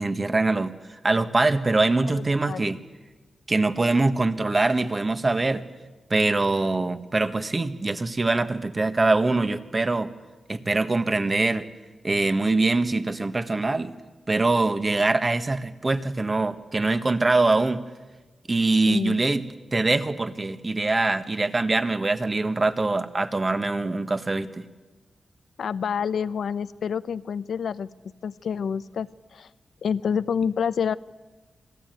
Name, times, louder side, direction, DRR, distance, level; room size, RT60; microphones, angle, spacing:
voice 1, 0.0-2.8 3.5-5.6 6.1-10.1 10.5-11.7 12.0-13.9 14.3-17.8 18.5-19.4 19.7-24.6, right 3 dB, 30° right, 9 dB, 1.5 m, -23 dB
voice 2, 2.2-2.6 18.9-19.2 25.6-27.9 28.2-29.5 29.8-31.0, left 7 dB, 80° left, 14 dB, 0.7 m, -28 dB
28.0 x 19.0 x 9.3 m, 1.2 s
cardioid pair, 95°, 0 cm